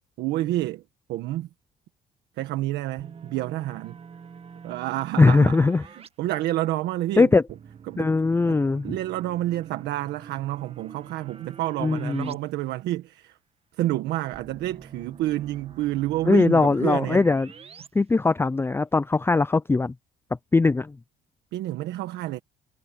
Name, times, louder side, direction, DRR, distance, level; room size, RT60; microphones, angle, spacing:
voice 1, 0.2-0.8 1.1-1.5 2.4-4.0 4.6-7.3 7.9-8.1 8.5-13.4 13.8-17.2 21.5-22.4, right 15 dB, 85° right, 1.5 m, -29 dB
sound 1, 3.0-6.1 7.5-12.3 12.7-12.8 14.3-17.9, right 6 dB, 35° right, 1.7 m, -46 dB
voice 2, 5.2-5.8 7.2-7.4 8.0-8.9 11.8-12.3 16.3-17.5 17.9-19.9 20.5-21.0, left 3 dB, 15° left, 0.5 m, -20 dB
cardioid pair, 110°, 17 cm